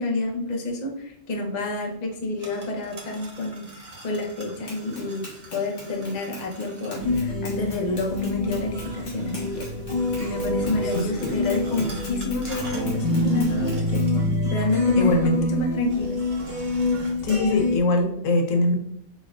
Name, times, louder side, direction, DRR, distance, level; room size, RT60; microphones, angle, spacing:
voice 1, 0.0-9.7 10.2-14.0 14.4-16.2, left 2 dB, 40° left, 0 dB, 0.7 m, -28 dB
sound 1, 2.1-7.3 8.7-14.4 14.7-14.8 15.7-17.1, right 2 dB, 40° right, 0.7 m, -46 dB
Run, 4.7-14.2, left 1 dB, 70° left, 1.5 m, -41 dB
sound 2, 7.0-17.8, left 2 dB, 55° right, 1.6 m, -26 dB
voice 2, 15.0-15.4 17.2-18.8, left 2 dB, 85° left, 4 dB, 1.0 m, -22 dB
4.3 x 3.5 x 2.3 m, 0.74 s
omnidirectional pair, 1.3 m